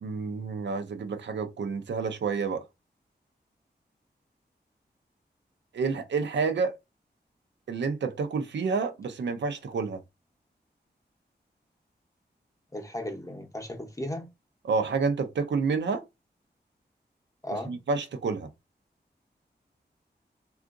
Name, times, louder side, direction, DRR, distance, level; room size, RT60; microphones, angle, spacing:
voice 1, 0.0-2.6 5.7-6.8 7.7-10.0 14.6-16.0 17.7-18.5, right 4 dB, 90° right, 0.5 m, -29 dB
voice 2, 12.7-14.3 17.4-17.8, left 1 dB, 20° left, 0.7 m, -35 dB
3.6 x 2.4 x 2.5 m
wide cardioid pair, 125°, 18 cm